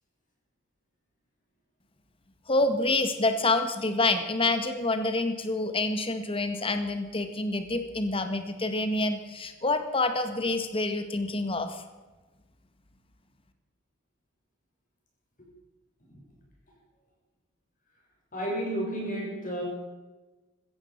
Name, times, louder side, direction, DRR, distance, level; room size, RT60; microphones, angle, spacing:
voice 1, 2.5-11.8, left 2 dB, 30° left, 8 dB, 1.8 m, -27 dB
voice 2, 18.3-19.6, right 1 dB, 45° left, -2 dB, 7.0 m, -32 dB
16.0 x 14.0 x 6.1 m, 1.2 s
head